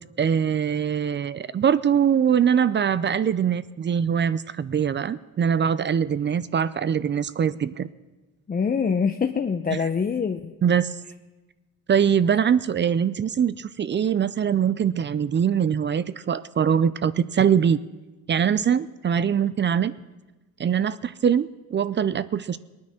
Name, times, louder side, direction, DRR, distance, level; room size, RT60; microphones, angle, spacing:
voice 1, 0.2-7.9 9.7-9.8 10.6-11.0 11.9-17.8 18.3-19.9 20.6-22.6, right 8 dB, 35° right, 16 dB, 0.5 m, -22 dB
voice 2, 8.5-10.5, left 6 dB, 30° left, 6 dB, 0.7 m, -24 dB
19.5 x 9.5 x 6.4 m, 1.2 s
cardioid pair, 90°, 30 cm